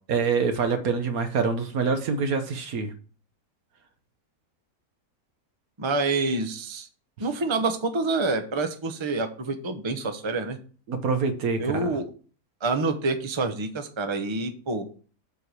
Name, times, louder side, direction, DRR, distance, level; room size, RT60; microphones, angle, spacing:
voice 1, 0.1-2.9 10.9-12.0, right 5 dB, 70° right, 7 dB, 1.5 m, -25 dB
voice 2, 5.8-6.9 7.2-10.6 11.6-12.0 12.6-14.8, right 3 dB, 25° right, 7 dB, 0.8 m, -27 dB
7.7 x 4.7 x 6.8 m, 0.40 s
omnidirectional pair, 1.6 m